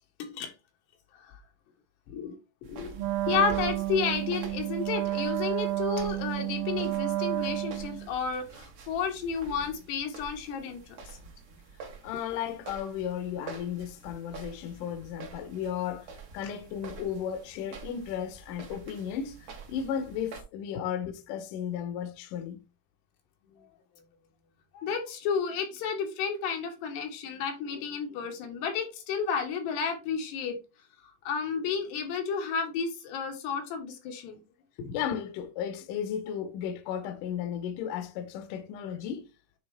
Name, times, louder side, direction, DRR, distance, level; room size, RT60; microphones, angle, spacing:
voice 1, 0.2-0.5 1.1-1.4 2.1-2.3 2.6-2.9 3.3-11.2 23.4-23.6 24.7-30.6 31.3-34.4 34.8-34.9, left 6 dB, 85° left, 3.7 m, -32 dB
sound 1, 2.6-20.4, right 4 dB, 55° right, 1.8 m, -47 dB
Wind instrument woodwind instrument, 2.9-8.1, right 16 dB, 70° right, 3.0 m, -30 dB
voice 2, 12.0-22.6 34.9-39.3, left 9 dB, 70° left, 2.2 m, -34 dB
9.9 x 4.4 x 3.5 m
omnidirectional pair, 4.7 m